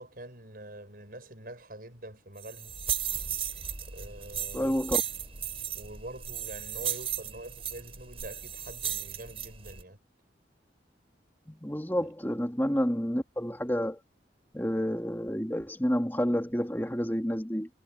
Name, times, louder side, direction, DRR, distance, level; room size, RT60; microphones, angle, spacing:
voice 1, 0.0-2.8 3.9-4.7 5.7-10.0 12.0-12.1, right 1 dB, 55° right, 6.5 m, -45 dB
sound 1, 2.4-9.8, right 9 dB, 35° right, 4.6 m, -35 dB
voice 2, 4.5-5.0 11.5-14.0 14.5-17.7, equal, 10° left, 2.9 m, -29 dB
head